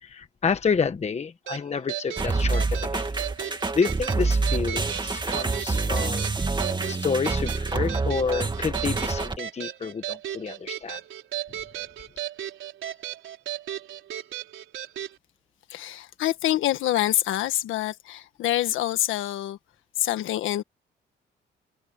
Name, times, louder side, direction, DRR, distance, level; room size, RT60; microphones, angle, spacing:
voice 1, 0.0-3.1 3.4-6.3 6.9-11.0, left 5 dB, 35° left, 1.2 m, -29 dB
sound 1, 1.5-15.1, right 12 dB, 80° right, 4.1 m, -36 dB
sound 2, 2.2-9.4, right 3 dB, 25° right, 2.6 m, -27 dB
voice 2, 15.7-19.6 20.0-20.6, left 13 dB, 85° left, 1.6 m, -26 dB
cardioid pair, 90°, 20 cm